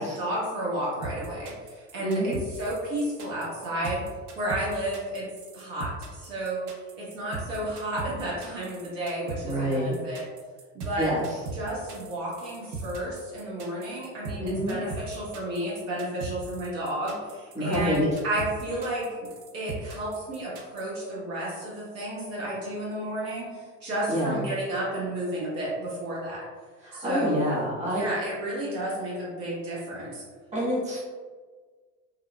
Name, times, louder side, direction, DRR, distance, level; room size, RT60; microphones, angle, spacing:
voice 1, 0.0-4.0 4.4-6.6 6.9-10.3 10.7-11.1 11.5-19.2 19.5-26.5 26.9-27.4 27.9-30.2, right 1 dB, 80° right, -6 dB, 1.3 m, -32 dB
sound 1, 1.0-20.8, right 3 dB, 55° right, 0.7 m, -38 dB
voice 2, 2.0-2.4 9.4-9.9 11.0-11.2 14.4-14.8 17.5-18.1 24.1-24.4 26.8-28.1 30.5-31.0, equal, 20° right, -7 dB, 1.2 m, -27 dB
3.4 x 2.3 x 2.3 m, 1.5 s
supercardioid pair, 95°, 38 cm